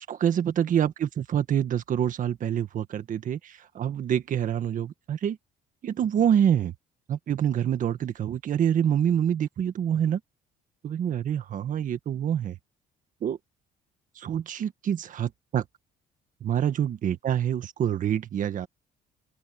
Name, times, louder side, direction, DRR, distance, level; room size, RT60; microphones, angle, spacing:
voice 1, 0.1-5.4 5.8-6.7 7.1-10.2 10.8-12.6 13.2-13.4 14.2-15.6 16.4-18.7, right 9 dB, 50° right, 1.7 m, -26 dB
open air
cardioid pair, 110°, 17 cm